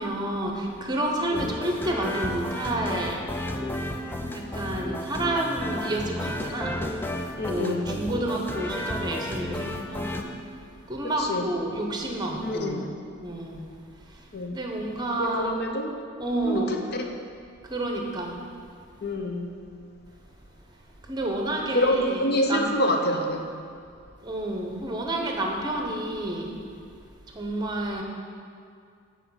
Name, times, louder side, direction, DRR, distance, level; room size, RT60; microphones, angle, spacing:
voice 1, 0.0-3.4 4.3-6.8 7.5-10.3 10.9-12.9 13.2-13.7 14.1-15.5 16.2-16.8 17.6-18.4 21.0-22.7 24.2-26.5 27.3-28.0, right 1 dB, 20° right, 1 dB, 0.8 m, -30 dB
sound 1, 1.3-10.2, left 1 dB, 10° left, 0.3 m, -32 dB
voice 2, 7.4-7.9 11.2-11.5 12.4-12.8 14.3-14.6 15.2-16.0 16.4-16.8 19.0-19.5 21.7-23.5, left 1 dB, 50° left, 4 dB, 0.7 m, -26 dB
8.2 x 4.6 x 5.7 m, 2.3 s
head